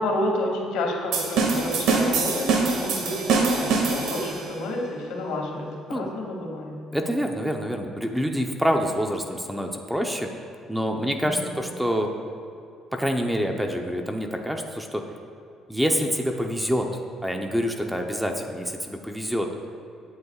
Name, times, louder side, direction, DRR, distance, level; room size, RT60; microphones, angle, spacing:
voice 1, 0.0-6.8 11.2-11.5, left 1 dB, 85° left, -1 dB, 2.3 m, -30 dB
sound 1, 1.1-4.5, right 4 dB, 85° right, 2.0 m, -24 dB
voice 2, 6.9-10.3 10.7-12.1 12.9-15.0 15.7-19.5, equal, 5° right, 3 dB, 0.8 m, -26 dB
18.0 x 9.6 x 2.4 m, 2.7 s
cardioid pair, 120°, 0 cm